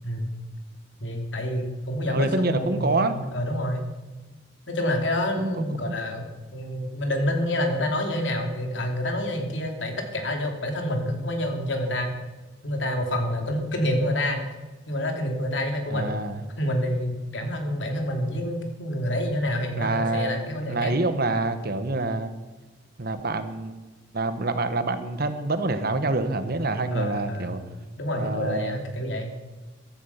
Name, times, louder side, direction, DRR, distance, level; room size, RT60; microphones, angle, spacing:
voice 1, 1.0-3.9 4.7-12.1 12.6-14.4 14.9-16.2 16.6-20.9 26.9-27.6 28.0-29.3, left 1 dB, 70° left, 3 dB, 3.1 m, -28 dB
voice 2, 2.0-3.2 5.4-6.0 15.9-16.4 19.8-22.3 23.0-23.8 24.1-27.6 28.2-28.8, right 2 dB, 55° right, 10 dB, 1.3 m, -27 dB
15.0 x 13.0 x 5.8 m, 1.2 s
head